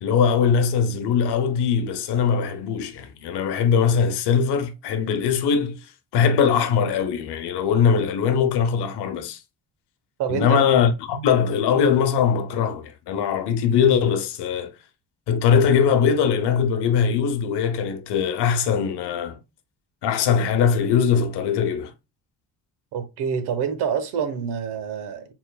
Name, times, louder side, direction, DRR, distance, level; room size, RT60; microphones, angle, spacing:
voice 1, 0.0-5.9 6.1-9.4 10.3-14.7 15.3-19.4 20.0-21.9, left 7 dB, 90° left, 0.8 m, -21 dB
voice 2, 10.2-10.6 22.9-25.3, right 7 dB, 90° right, 0.9 m, -27 dB
4.5 x 3.7 x 2.2 m
cardioid pair, 100°, 39 cm